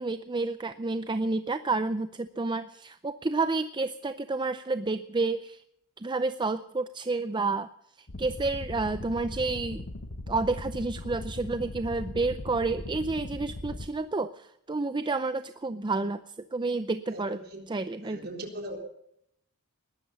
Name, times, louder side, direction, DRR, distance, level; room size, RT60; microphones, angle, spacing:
voice 1, 0.0-5.6 6.0-7.7 8.2-9.9 10.3-16.2 16.5-17.4 17.7-18.2, right 3 dB, 20° right, 11 dB, 0.5 m, -30 dB
sound 1, 8.1-13.9, left 1 dB, 55° left, 1.1 m, -39 dB
voice 2, 17.1-17.7 18.0-18.8, right 1 dB, 45° right, 3 dB, 3.8 m, -40 dB
20.0 x 12.5 x 5.5 m, 0.74 s
head